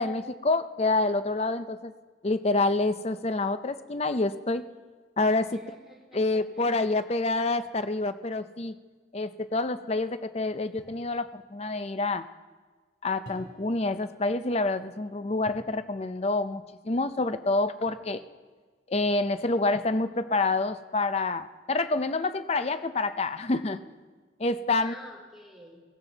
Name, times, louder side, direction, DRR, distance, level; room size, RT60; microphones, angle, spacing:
voice 1, 0.0-1.9 2.2-4.6 5.2-5.8 6.1-8.8 9.1-12.3 13.0-18.2 18.9-23.8 24.4-25.0, left 2 dB, 30° left, 11 dB, 0.5 m, -27 dB
voice 2, 5.5-6.2 6.5-6.8 24.7-25.8, equal, ahead, -2 dB, 2.8 m, -48 dB
sound 1, 10.8-11.1 13.2-13.9 15.4-15.8 17.9-18.4, right 1 dB, 75° left, 2.8 m, -49 dB
16.5 x 16.0 x 4.0 m, 1.5 s
head